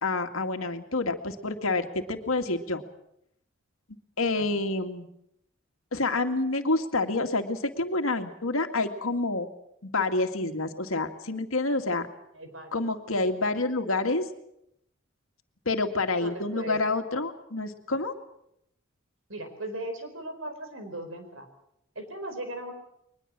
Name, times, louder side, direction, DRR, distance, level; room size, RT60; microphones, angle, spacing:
voice 1, 0.0-2.8 4.2-5.1 5.9-9.5 9.8-12.1 12.7-14.3 15.7-18.1, left 2 dB, 80° left, 6 dB, 2.2 m, -28 dB
voice 2, 12.3-12.8 16.2-16.8 19.3-21.5 21.9-22.7, right 1 dB, 70° right, 7 dB, 4.6 m, -38 dB
22.5 x 21.0 x 7.5 m, 0.77 s
head